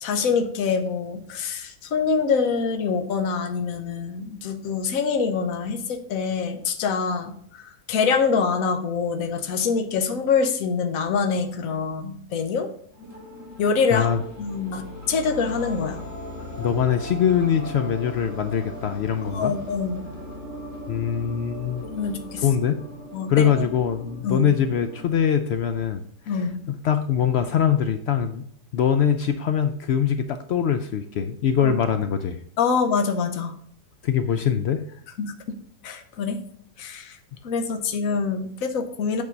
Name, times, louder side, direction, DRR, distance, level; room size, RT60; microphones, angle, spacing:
voice 1, 0.0-12.7 13.6-14.1 14.4-16.0 19.3-20.0 21.8-22.4 23.1-23.7 24.2-24.5 26.3-26.5 31.6-31.8 32.6-33.6 35.2-35.3 35.8-36.4 36.8-37.2 37.4-39.2, left 5 dB, 60° left, 7 dB, 1.2 m, -25 dB
sound 1, 12.9-25.9, equal, 10° left, 2.5 m, -38 dB
voice 2, 16.6-19.5 20.9-21.8 22.4-22.8 23.3-26.4 26.8-28.4 28.7-32.4 34.0-34.8, left 8 dB, 85° left, 8 dB, 0.5 m, -23 dB
8.4 x 4.7 x 5.1 m, 0.64 s
omnidirectional pair, 1.7 m